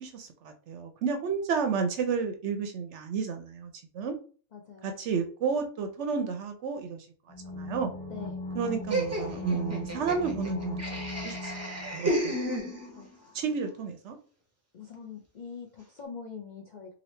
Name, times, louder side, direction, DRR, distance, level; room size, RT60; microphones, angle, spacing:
voice 1, 0.0-4.2 4.8-7.1 7.5-7.9 8.6-11.0 11.2-11.5 11.9-12.4 13.3-14.2, right 5 dB, 65° right, 6 dB, 0.8 m, -31 dB
voice 2, 4.5-5.0 8.1-8.4 12.9-13.4 14.7-16.9, left 6 dB, 60° left, 0 dB, 0.4 m, -44 dB
sound 1, 7.3-13.0 13.2-13.3, left 2 dB, 20° left, 0.8 m, -39 dB
Laughter, 8.9-13.1, right 1 dB, 20° right, 0.5 m, -32 dB
2.9 x 2.7 x 3.1 m, 0.39 s
omnidirectional pair, 1.4 m